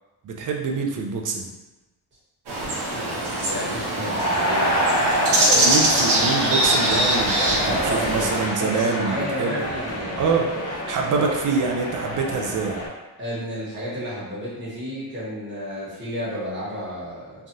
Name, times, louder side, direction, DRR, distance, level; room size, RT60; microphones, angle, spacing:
voice 1, 0.2-1.5 5.5-9.6 10.2-10.5 10.9-12.8, right 4 dB, 50° right, 1 dB, 0.5 m, -25 dB
sound 1, 2.5-8.4, right 1 dB, 75° right, 0.8 m, -23 dB
sound 2, 2.9-12.9, equal, 40° left, 0.7 m, -27 dB
voice 2, 3.5-5.1 7.5-10.4 11.1-11.3 13.2-17.5, equal, 25° right, -9 dB, 1.2 m, -31 dB
3.3 x 2.3 x 2.6 m, 1.1 s
wide cardioid pair, 165°, 41 cm